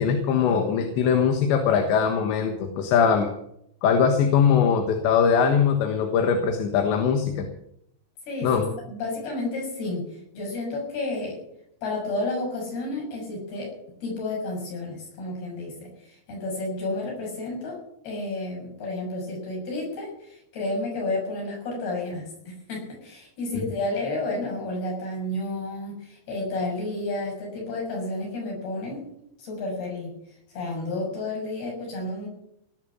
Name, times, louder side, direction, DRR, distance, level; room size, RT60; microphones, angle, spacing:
voice 1, 0.0-3.3 3.8-7.5 8.4-8.7, left 6 dB, 80° left, 4 dB, 3.6 m, -21 dB
voice 2, 8.3-11.4 11.8-13.7 14.0-15.9 16.3-17.8 18.0-29.1 29.4-30.2 30.5-32.3, left 2 dB, 60° left, -1 dB, 8.6 m, -31 dB
18.5 x 7.3 x 8.6 m, 0.74 s
omnidirectional pair, 5.2 m